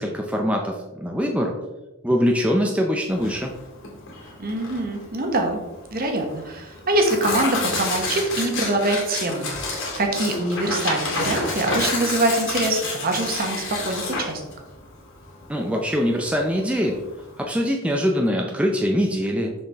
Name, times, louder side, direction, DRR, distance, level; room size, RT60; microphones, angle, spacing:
voice 1, 0.0-1.5 2.0-3.5 15.5-17.0 17.4-19.5, equal, 5° right, 1 dB, 0.5 m, -23 dB
Tearing, 3.1-17.4, left 3 dB, 60° left, 2.2 m, -30 dB
voice 2, 4.4-5.6 5.9-14.4, right 2 dB, 45° right, 3 dB, 1.2 m, -24 dB
6.4 x 5.8 x 3.5 m, 1.1 s
head